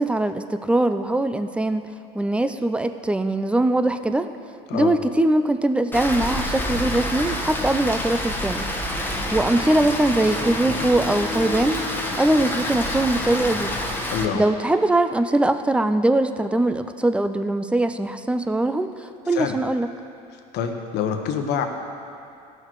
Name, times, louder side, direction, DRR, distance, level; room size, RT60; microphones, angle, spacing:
voice 1, 0.0-1.9 2.1-4.3 4.7-8.7 9.3-11.9 12.2-13.8 14.3-19.9, right 1 dB, 5° right, 10 dB, 0.5 m, -21 dB
Rain, 5.9-14.2, left 1 dB, 10° left, 1.3 m, -27 dB
voice 2, 14.1-14.4 19.3-19.5 20.5-21.7, left 7 dB, 60° left, 5 dB, 1.2 m, -26 dB
16.0 x 6.3 x 4.7 m, 2.5 s
supercardioid pair, 90°, 20 cm